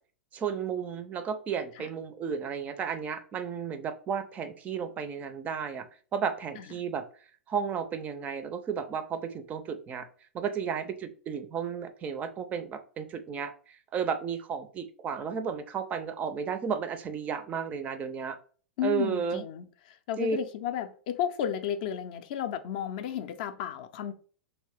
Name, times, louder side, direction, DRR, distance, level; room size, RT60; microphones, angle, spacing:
voice 1, 0.3-7.1 7.5-10.1 10.3-18.4 18.8-19.4 20.2-20.4, right 6 dB, 25° right, 0.4 m, -33 dB
voice 2, 18.8-24.1, left 9 dB, 45° left, 0.4 m, -33 dB
2.9 x 2.7 x 3.2 m
figure-of-eight pair, 95°, 6 cm